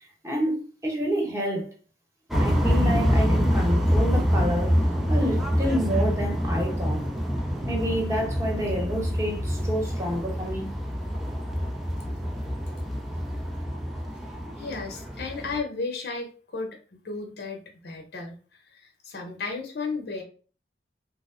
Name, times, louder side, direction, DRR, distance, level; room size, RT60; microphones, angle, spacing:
voice 1, 0.2-1.7 2.4-4.8 5.1-7.1 7.6-10.7, equal, 15° right, 0.9 m, -29 dB
sound 1, 2.3-15.6, equal, ahead, 0.4 m, -26 dB
voice 2, 14.6-20.2, left 4 dB, 60° left, 0.8 m, -34 dB
3.0 x 2.0 x 3.6 m
head